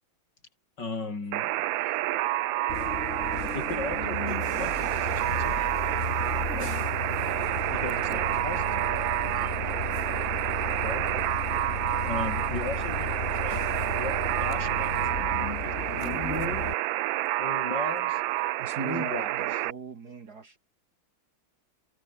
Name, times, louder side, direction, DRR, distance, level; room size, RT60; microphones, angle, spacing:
voice 1, 0.8-1.7 3.5-5.6 6.5-6.7 7.7-9.1 10.8-11.1 12.0-16.7 17.4-18.1 18.8-19.3, left 3 dB, 60° left, 4.6 m, -37 dB
Alarm, 1.3-19.7, right 16 dB, 80° right, 1.3 m, -29 dB
voice 2, 2.3-3.4 5.5-5.8 9.2-9.9 11.1-11.2 17.5-18.8 19.2-19.6 20.1-20.6, right 2 dB, 35° right, 5.1 m, -55 dB
Bus, 2.7-16.7, left 3 dB, 35° left, 3.2 m, -34 dB
voice 3, 18.6-20.6, right 5 dB, 50° right, 2.3 m, -38 dB
omnidirectional pair, 2.2 m